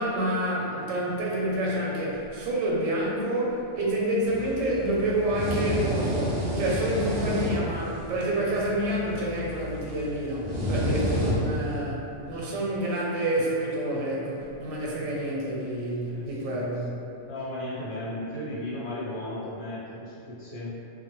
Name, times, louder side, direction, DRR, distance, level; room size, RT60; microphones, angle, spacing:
voice 1, 0.0-17.1, right 1 dB, 90° right, -4 dB, 1.0 m, -28 dB
sound 1, 4.3-11.8, equal, 70° right, 0.4 m, -30 dB
voice 2, 16.0-16.6 17.3-20.7, left 1 dB, 60° left, -9 dB, 0.9 m, -35 dB
2.1 x 2.0 x 2.9 m, 2.7 s
omnidirectional pair, 1.3 m